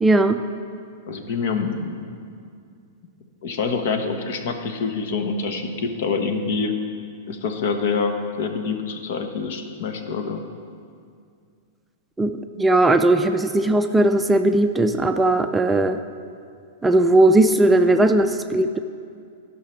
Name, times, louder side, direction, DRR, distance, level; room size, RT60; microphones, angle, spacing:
voice 1, 0.0-0.4 12.2-12.3 12.6-16.0 16.8-18.8, right 2 dB, 10° right, 7 dB, 0.4 m, -18 dB
voice 2, 1.1-2.0 3.4-6.8 7.3-10.4, left 5 dB, 65° left, 6 dB, 1.1 m, -26 dB
12.0 x 5.7 x 5.9 m, 2.3 s
hypercardioid pair, 130°, 0 cm